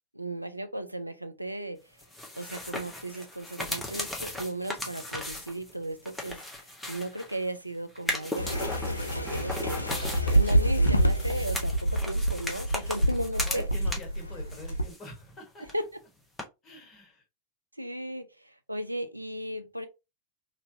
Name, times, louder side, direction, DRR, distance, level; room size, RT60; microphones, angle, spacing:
voice 1, 0.1-2.0 2.3-6.6 6.9-9.8 10.3-13.7 15.6-15.9 17.8-19.9, right 1 dB, 85° right, 0.4 m, -36 dB
sound 1, 2.0-7.5 8.0-14.2 14.5-15.4 15.6-15.7 16.4-16.5, left 1 dB, 5° left, 0.8 m, -37 dB
sound 2, 8.4-14.9, right 1 dB, 85° left, 0.4 m, -27 dB
voice 2, 12.7-13.0 13.3-15.6 16.6-17.2, left 2 dB, 30° left, 1.3 m, -46 dB
3.1 x 2.6 x 2.6 m
figure-of-eight pair, 90°, 0 cm